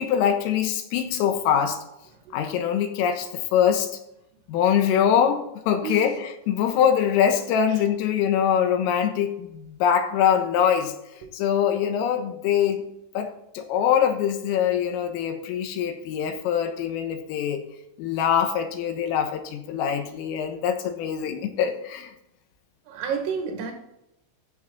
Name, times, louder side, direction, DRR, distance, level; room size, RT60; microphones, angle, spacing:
voice 1, 0.0-1.8 2.3-3.9 4.5-10.9 11.3-12.9 13.2-17.6 18.0-22.1, left 8 dB, 90° left, 7 dB, 3.8 m, -23 dB
voice 2, 7.4-7.8 11.2-11.3 22.9-23.7, right 6 dB, 75° right, 3 dB, 4.7 m, -31 dB
14.0 x 7.9 x 4.2 m, 0.84 s
omnidirectional pair, 5.9 m